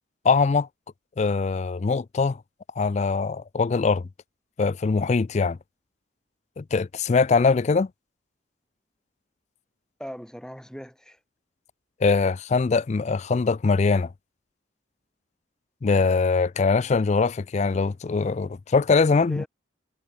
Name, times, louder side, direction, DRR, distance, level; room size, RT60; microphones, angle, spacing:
voice 1, 0.2-0.7 1.2-2.4 2.8-4.0 4.6-5.6 6.6-7.9 12.0-14.1 15.8-19.4, left 4 dB, 35° left, 0.4 m, -22 dB
voice 2, 10.0-11.2 19.1-19.5, equal, 5° left, 4.6 m, -39 dB
head